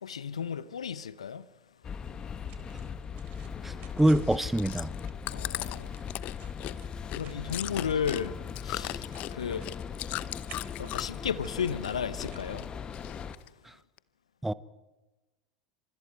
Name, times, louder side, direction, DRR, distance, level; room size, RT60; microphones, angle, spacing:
voice 1, 0.0-1.5 5.3-5.9 7.1-8.4 8.6-9.7 10.8-12.7, left 7 dB, 75° left, 0.9 m, -34 dB
sound 1, 1.8-13.3, left 7 dB, 25° left, 1.4 m, -39 dB
sound 2, 2.0-13.4, right 10 dB, 45° right, 4.0 m, -56 dB
voice 2, 3.6-4.9 14.4-14.5, right 1 dB, 5° right, 0.9 m, -25 dB
Chewing mastication, 4.2-11.3 11.6-12.3 12.6-13.5 14.0-14.1, left 16 dB, 45° left, 0.8 m, -38 dB
29.0 x 26.5 x 4.6 m
figure-of-eight pair, 80°, 3 cm